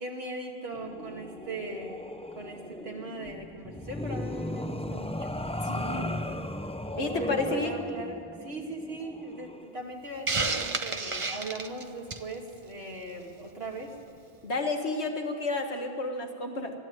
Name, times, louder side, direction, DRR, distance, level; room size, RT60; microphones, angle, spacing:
voice 1, 0.0-6.5 7.0-13.9, right 2 dB, 70° right, 0 dB, 2.7 m, -39 dB
sound 1, 0.7-9.7, left 1 dB, 5° left, 0.5 m, -37 dB
voice 2, 5.6-6.1 7.0-7.8 14.4-16.7, left 3 dB, 90° left, 4 dB, 2.1 m, -31 dB
Hiss, 10.3-12.3, right 3 dB, 30° right, 0.9 m, -30 dB
24.0 x 12.5 x 8.9 m, 2.3 s
omnidirectional pair, 1.1 m